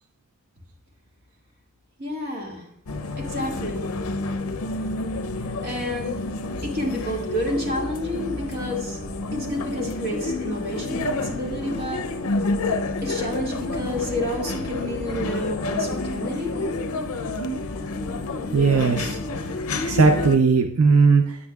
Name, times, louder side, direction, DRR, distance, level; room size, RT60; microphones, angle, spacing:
voice 1, 2.0-2.7 3.2-3.9 5.6-6.2 6.6-9.0 9.3-12.1 13.0-16.6, equal, 45° right, -1 dB, 1.7 m, -29 dB
sound 1, 2.9-20.4, left 2 dB, 85° left, 0.6 m, -29 dB
voice 2, 18.5-19.2 19.8-21.4, right 4 dB, 80° right, 6 dB, 0.5 m, -18 dB
9.5 x 8.6 x 2.3 m, 0.73 s
head